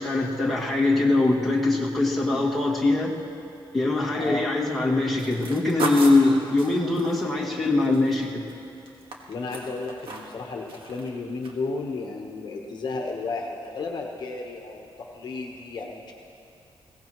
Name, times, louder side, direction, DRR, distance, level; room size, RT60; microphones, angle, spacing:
voice 1, 0.0-3.1 3.7-8.4, left 2 dB, ahead, -6 dB, 2.1 m, -22 dB
sound 1, 5.2-8.5 8.9-10.4 10.7-11.1 11.4-11.5, right 3 dB, 65° right, 1.7 m, -35 dB
voice 2, 9.3-16.1, left 3 dB, 50° left, 1 dB, 1.2 m, -33 dB
21.5 x 17.0 x 3.1 m, 2.5 s
wide cardioid pair, 160°, 9 cm